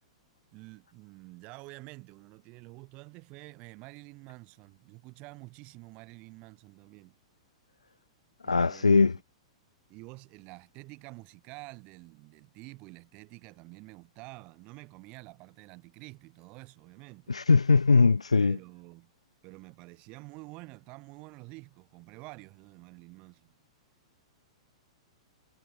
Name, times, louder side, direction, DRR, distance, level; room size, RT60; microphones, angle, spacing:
voice 1, 0.5-7.1 8.4-9.1 9.9-17.3 18.4-19.1 19.4-23.5, right 25 dB, 40° right, 7.4 m, -49 dB
voice 2, 8.5-9.2 17.3-18.6, left 4 dB, 90° left, 1.0 m, -21 dB
hypercardioid pair, 110°, 3 cm